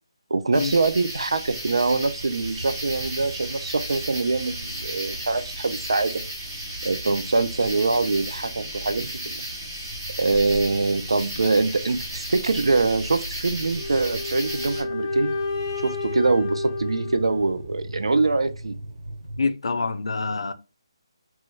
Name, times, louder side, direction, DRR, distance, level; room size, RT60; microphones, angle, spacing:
voice 1, 0.3-6.2 6.8-9.4 10.2-15.4 15.8-18.7, right 3 dB, 85° right, 0.5 m, -24 dB
sound 1, 0.5-14.8, right 1 dB, 20° right, 0.6 m, -35 dB
sound 2, 1.9-19.5, right 1 dB, 40° right, 1.0 m, -40 dB
sound 3, 13.7-17.7, left 3 dB, 20° left, 0.7 m, -31 dB
voice 2, 19.4-20.5, left 4 dB, 70° left, 0.4 m, -26 dB
3.0 x 2.3 x 3.1 m
hypercardioid pair, 180°, 3 cm